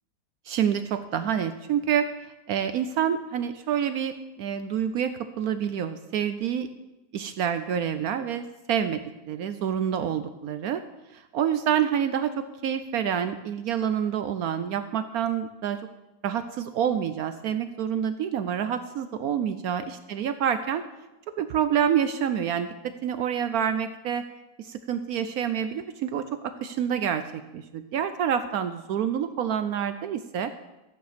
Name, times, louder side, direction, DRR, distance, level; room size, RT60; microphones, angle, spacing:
voice 1, 0.5-6.7 7.1-10.8 11.1-15.8 16.2-20.8 21.4-24.2 24.6-30.5, right 8 dB, 70° right, 10 dB, 1.0 m, -27 dB
13.5 x 9.2 x 5.1 m, 1.0 s
omnidirectional pair, 1.8 m